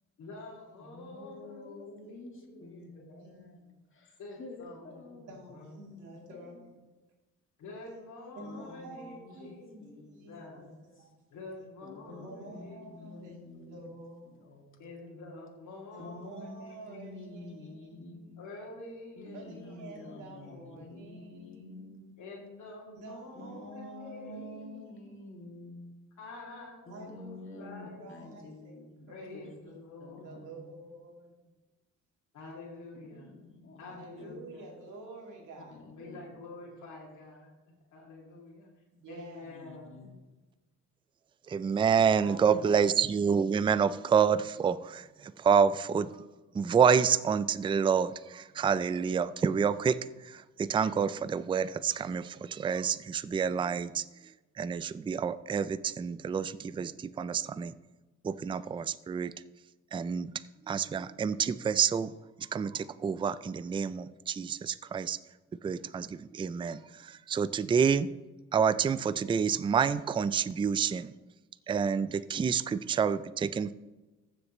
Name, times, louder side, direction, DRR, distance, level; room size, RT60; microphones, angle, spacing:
voice 1, 0.2-3.2 4.2-6.1 7.6-10.8 11.3-13.6 14.8-16.1 16.6-16.7 18.4-19.7 20.0-20.8 22.2-24.5 26.2-28.4 29.1-30.5 32.3-33.3 33.8-34.7 36.0-37.5 37.9-40.1, left 2 dB, 75° left, 2.2 m, -48 dB
voice 2, 0.8-3.6 3.9-5.4 6.3-6.6 8.4-11.1 11.8-13.8 14.2-14.9 16.0-18.4 19.2-22.2 23.3-26.0 26.9-29.6 30.0-30.7 32.9-34.4 35.7-36.3 39.4-40.2, left 2 dB, 40° left, 2.2 m, -49 dB
voice 3, 3.2-3.6 5.3-6.8 8.3-11.1 12.1-14.6 15.9-18.4 19.3-21.9 22.9-25.3 26.9-29.5 30.2-31.4 33.8-35.8 39.0-39.5 42.2-43.0, right 2 dB, 85° right, 2.9 m, -49 dB
voice 4, 41.5-46.1 46.5-50.0 50.2-54.0 54.6-57.7 58.2-59.3 59.9-60.3 60.7-62.1 62.4-65.2 65.6-68.1 68.5-71.1 71.7-73.7, right 7 dB, 15° right, 0.3 m, -28 dB
14.5 x 6.6 x 3.0 m
cardioid pair, 90°, 30 cm